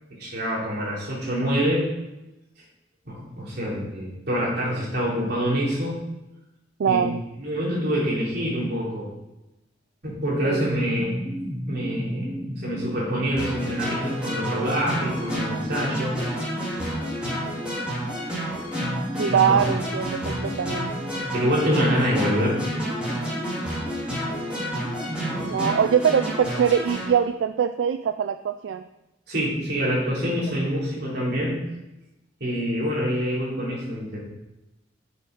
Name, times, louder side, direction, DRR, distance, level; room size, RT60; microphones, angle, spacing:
voice 1, 0.1-1.9 3.0-6.0 6.9-7.0 7.4-9.1 10.0-11.1 11.7-16.1 19.3-19.6 21.3-22.6 25.2-25.6 29.3-31.6 32.4-34.2, equal, 60° right, -5 dB, 3.0 m, -26 dB
voice 2, 6.8-7.2 10.4-10.7 19.2-20.9 25.4-28.8, right 7 dB, 85° right, 11 dB, 0.3 m, -23 dB
sound 1, 11.0-26.5, equal, 15° left, 0.6 m, -34 dB
sound 2, 13.4-27.1, equal, 5° right, 2.8 m, -31 dB
6.4 x 6.4 x 5.2 m, 0.97 s
head